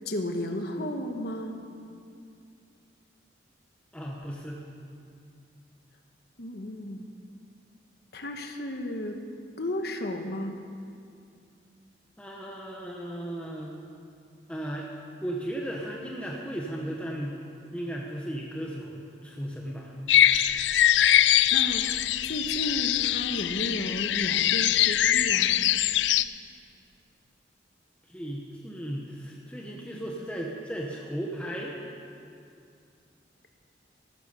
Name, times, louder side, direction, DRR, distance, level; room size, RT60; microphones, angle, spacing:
voice 1, 0.0-1.6 6.4-7.0 8.1-9.2 9.6-10.6 21.5-21.9 22.2-25.5, left 1 dB, 60° left, 4 dB, 1.2 m, -33 dB
voice 2, 3.9-4.6 12.2-13.7 14.5-14.9 15.2-17.4 17.7-19.9 28.1-31.8, right 1 dB, 5° left, -3 dB, 1.2 m, -35 dB
sound 1, 20.1-26.2, left 11 dB, 80° left, 0.4 m, -23 dB
14.0 x 12.0 x 6.9 m, 2.4 s
head